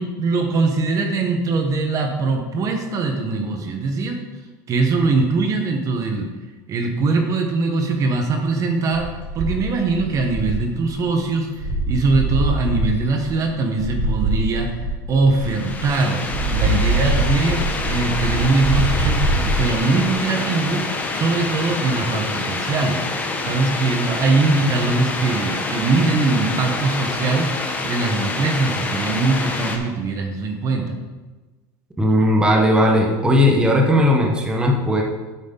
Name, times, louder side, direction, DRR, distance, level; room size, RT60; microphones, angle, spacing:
voice 1, 0.0-4.2 4.7-6.3 6.7-9.1 9.3-11.5 11.9-16.2 16.5-20.8 21.1-23.0 23.4-27.5 27.8-30.9, right 3 dB, 35° right, 4 dB, 1.1 m, -21 dB
sound 1, 8.9-11.2 11.6-15.9 16.2-19.6, right 2 dB, 60° right, 2.7 m, -23 dB
sound 2, 15.4-29.8, left 3 dB, 15° left, 1.0 m, -27 dB
voice 2, 32.0-35.0, left 1 dB, 10° right, 0 dB, 1.1 m, -17 dB
8.5 x 7.4 x 3.9 m, 1.2 s
supercardioid pair, 135°, 10 cm